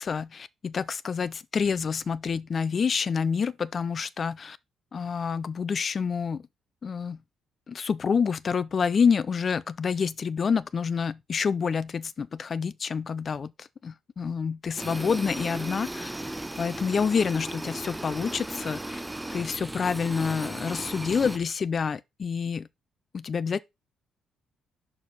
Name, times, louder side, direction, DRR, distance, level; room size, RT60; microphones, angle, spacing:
voice 1, 0.0-4.6 4.9-6.4 6.8-7.2 7.7-16.1 16.6-19.0 19.3-22.7 23.1-23.6, left 6 dB, 45° left, 0.3 m, -28 dB
sound 1, 14.8-21.4, right 1 dB, 10° right, 0.5 m, -36 dB
6.0 x 4.8 x 4.0 m
cardioid pair, 90°, 0 cm